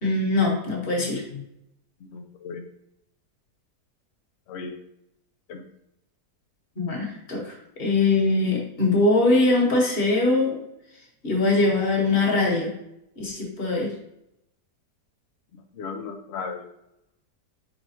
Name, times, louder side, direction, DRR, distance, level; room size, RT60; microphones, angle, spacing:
voice 1, 0.0-1.4 6.8-7.5 7.8-10.6 11.2-12.7 13.2-13.9, left 2 dB, 40° left, -1 dB, 1.3 m, -22 dB
voice 2, 2.0-2.7 4.5-4.7 5.5-5.6 15.7-16.7, left 5 dB, 90° left, 5 dB, 0.5 m, -35 dB
4.6 x 4.0 x 2.8 m, 0.81 s
omnidirectional pair, 1.8 m